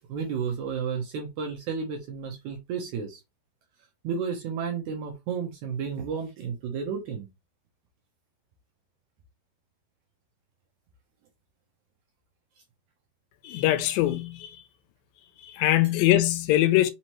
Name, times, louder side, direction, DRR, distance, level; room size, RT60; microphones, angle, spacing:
voice 1, 0.1-3.2 4.0-7.3, right 6 dB, 75° right, 1.8 m, -32 dB
voice 2, 13.4-14.6 15.5-16.9, left 14 dB, 80° left, 2.2 m, -22 dB
5.4 x 2.9 x 2.9 m
omnidirectional pair, 4.1 m